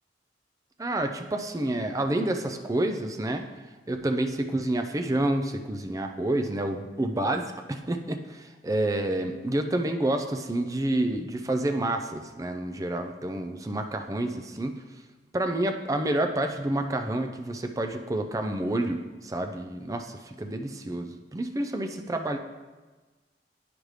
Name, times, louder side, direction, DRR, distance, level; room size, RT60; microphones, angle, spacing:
voice 1, 0.8-3.5 3.9-14.8 15.3-22.4, right 1 dB, 20° right, 6 dB, 0.4 m, -29 dB
9.8 x 5.1 x 3.2 m, 1.3 s
head